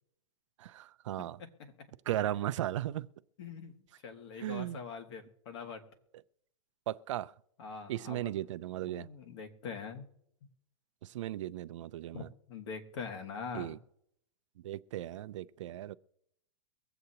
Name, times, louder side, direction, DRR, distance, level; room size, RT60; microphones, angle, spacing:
voice 1, 0.6-1.4 2.1-3.1 4.4-4.8 6.9-7.3 7.9-9.1 11.0-12.3 13.5-13.8 14.6-15.9, right 13 dB, 65° right, 0.5 m, -36 dB
voice 2, 3.4-5.8 7.6-8.3 8.9-10.1 12.1-13.8, left 5 dB, 55° left, 1.8 m, -43 dB
23.5 x 7.9 x 2.9 m
supercardioid pair, 160°, 17 cm